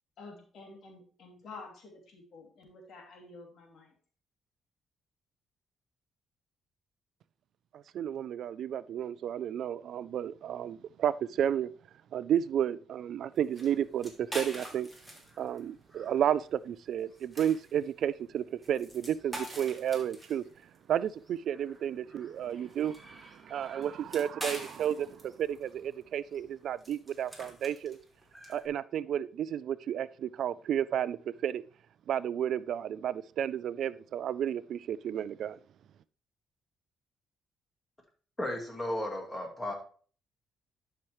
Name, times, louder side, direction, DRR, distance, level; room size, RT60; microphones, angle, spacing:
voice 1, 0.2-3.9, left 3 dB, 65° left, 2.7 m, -50 dB
voice 2, 7.7-11.7 12.1-14.9 15.4-20.4 20.9-28.0 28.5-31.6 32.1-35.6, right 9 dB, 70° right, 0.3 m, -32 dB
sound 1, 13.4-28.7, right 1 dB, ahead, 2.7 m, -46 dB
voice 3, 38.4-39.7, left 1 dB, 20° left, 2.4 m, -34 dB
12.0 x 5.8 x 3.1 m
cardioid pair, 90°, 0 cm